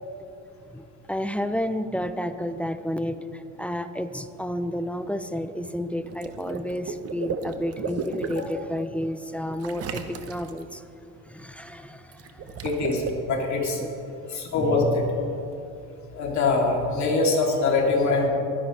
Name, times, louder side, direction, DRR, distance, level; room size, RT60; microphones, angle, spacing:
voice 1, 0.7-10.8 11.2-12.5 13.8-13.9, equal, 5° left, 9 dB, 0.4 m, -31 dB
Water / Liquid, 6.0-8.5 9.6-10.6 12.1-13.1, right 6 dB, 45° right, 1.0 m, -34 dB
voice 2, 12.6-13.8 14.3-15.0 16.1-18.3, left 3 dB, 55° left, -1 dB, 3.0 m, -23 dB
22.5 x 10.5 x 3.3 m, 2.6 s
cardioid pair, 125°, 34 cm